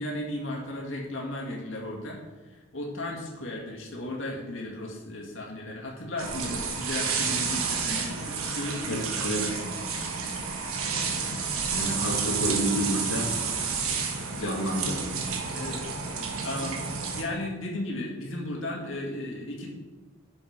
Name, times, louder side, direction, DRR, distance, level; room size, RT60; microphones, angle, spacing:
voice 1, 0.0-2.2 2.4-9.2 14.7-15.0 15.5-15.8 16.4-16.8 17.1-19.7, left 1 dB, 65° left, -2 dB, 2.1 m, -35 dB
sound 1, 6.2-17.2, right 5 dB, 85° right, 1.2 m, -30 dB
voice 2, 8.9-9.5 11.7-13.3 14.3-15.0, equal, 85° left, -3 dB, 1.8 m, -29 dB
9.0 x 6.3 x 5.2 m, 1.2 s
head